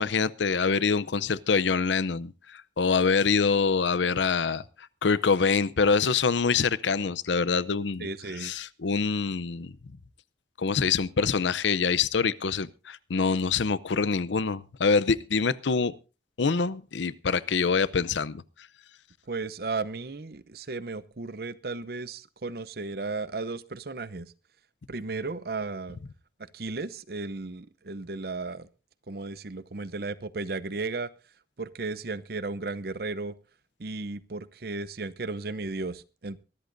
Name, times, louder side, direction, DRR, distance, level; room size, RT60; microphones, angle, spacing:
voice 1, 0.0-8.1 8.4-9.7 10.6-15.9 16.4-18.4, left 5 dB, 90° left, 0.6 m, -25 dB
voice 2, 8.0-8.5 19.3-24.3 24.9-26.0 26.5-28.7 29.1-31.1 31.6-33.3 33.8-36.4, right 3 dB, 55° right, 0.7 m, -34 dB
23.5 x 13.0 x 2.6 m
head